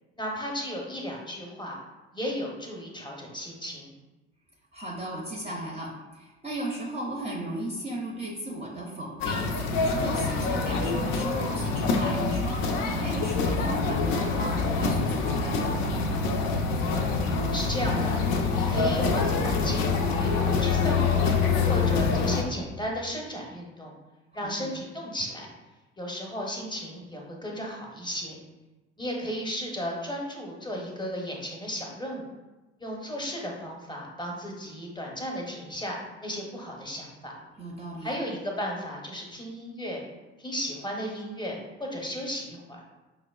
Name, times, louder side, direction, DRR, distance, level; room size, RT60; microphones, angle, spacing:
voice 1, 0.1-1.8 2.1-3.9 16.8-19.8 20.2-21.3 21.7-23.9 24.3-25.5 26.0-28.4 29.0-32.3 32.8-35.9 36.2-37.4 38.0-40.0 40.4-42.8, equal, 15° left, -1 dB, 0.7 m, -35 dB
voice 2, 4.7-9.4 9.8-12.6 12.9-15.7 24.4-24.7 37.6-38.1, right 1 dB, 20° right, -3 dB, 0.5 m, -35 dB
sound 1, 9.2-22.4, left 4 dB, 65° left, 0.5 m, -26 dB
5.0 x 2.0 x 2.3 m, 1.1 s
figure-of-eight pair, 50°, 33 cm